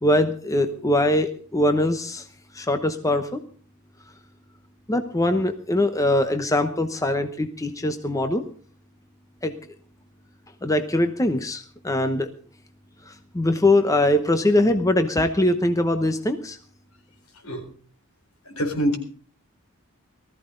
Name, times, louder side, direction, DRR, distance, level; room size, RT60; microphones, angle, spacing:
voice 1, 0.0-2.3 2.5-3.4 4.9-8.4 9.4-9.5 10.6-12.3 13.1-16.6, left 1 dB, 15° left, 8 dB, 0.9 m, -22 dB
voice 2, 18.4-19.0, equal, 70° left, 4 dB, 4.1 m, -25 dB
19.0 x 14.0 x 3.9 m, 0.42 s
head